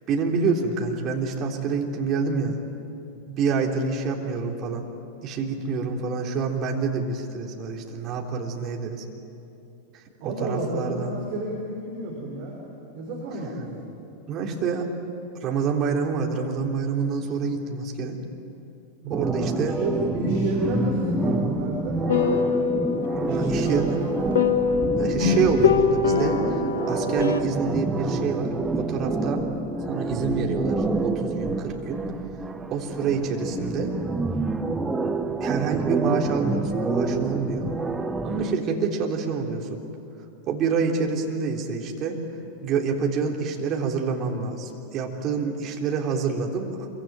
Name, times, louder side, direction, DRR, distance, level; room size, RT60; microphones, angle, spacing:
voice 1, 0.1-2.6 3.3-4.9 5.2-9.0 9.9-11.1 14.3-14.9 15.3-18.2 19.1-19.8 23.1-23.9 25.0-29.5 29.9-32.1 32.7-33.9 35.4-37.8 38.2-39.8 40.5-42.2 42.6-46.9, right 5 dB, 35° right, 1 dB, 3.5 m, -27 dB
voice 2, 10.2-12.6 12.9-13.8 19.0-22.7 23.2-24.1, right 2 dB, 50° right, -2 dB, 5.7 m, -31 dB
sound 1, 19.1-38.5, right 3 dB, 10° right, 1.4 m, -28 dB
sound 2, 22.1-27.4, left 6 dB, 65° left, 1.6 m, -24 dB
26.5 x 24.0 x 9.2 m, 2.8 s
figure-of-eight pair, 90°, 0 cm